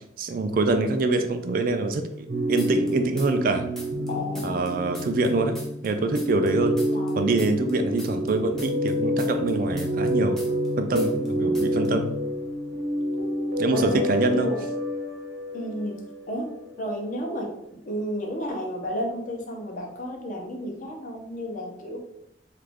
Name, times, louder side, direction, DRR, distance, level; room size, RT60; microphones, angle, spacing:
voice 1, 0.2-2.1 2.5-3.6 4.4-5.6 5.8-6.8 7.1-10.4 10.8-12.1 13.6-14.5, right 2 dB, 50° right, 7 dB, 0.4 m, -24 dB
sound 1, 2.3-16.6 16.9-17.0, equal, 90° right, 0.9 m, -28 dB
sound 2, 2.6-3.5 3.8-6.5 6.8-10.7 10.9-11.3 11.5-11.9, equal, ahead, 0.5 m, -43 dB
voice 2, 4.1-4.8 6.9-7.2 11.6-11.9 13.7-14.6 15.5-16.5 16.8-17.5 17.8-22.0, equal, 45° left, 1 dB, 0.7 m, -32 dB
2.9 x 2.5 x 3.4 m, 0.78 s
head